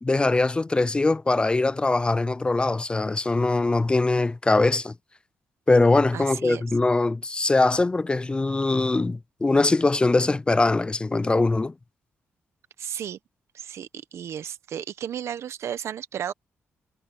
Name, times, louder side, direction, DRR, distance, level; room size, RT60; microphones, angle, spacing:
voice 1, 0.0-4.9 5.7-11.7, left 2 dB, 20° left, 0.5 m, -22 dB
voice 2, 6.1-6.6 12.8-13.2 13.5-16.3, right 9 dB, 70° right, 1.0 m, -33 dB
cardioid pair, 85°, 5 cm